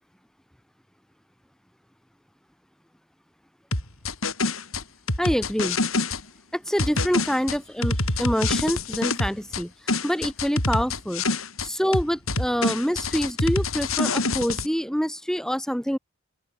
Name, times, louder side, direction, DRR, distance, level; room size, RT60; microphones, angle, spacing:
sound 1, 3.7-6.2 6.8-9.6 9.9-11.7 11.9-14.7, left 3 dB, 80° left, 6.7 m, -26 dB
voice 1, 5.2-5.8 6.5-9.7 10.0-11.2 11.6-16.0, equal, 5° left, 2.2 m, -26 dB
open air
head